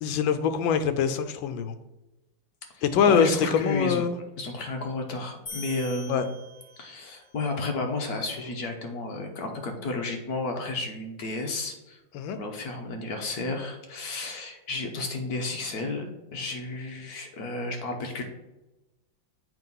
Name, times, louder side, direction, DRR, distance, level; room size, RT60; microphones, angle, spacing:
voice 1, 0.0-1.7 2.8-4.2 6.1-6.3 12.1-12.4, left 7 dB, 80° left, 10 dB, 1.3 m, -24 dB
voice 2, 2.7-4.0 4.4-6.3 6.8-12.0 12.3-16.0 16.3-18.2, left 2 dB, 60° left, 3 dB, 1.3 m, -32 dB
sound 1, 5.5-7.1, left 2 dB, 35° left, 1.6 m, -42 dB
7.6 x 3.0 x 5.4 m, 0.98 s
omnidirectional pair, 2.2 m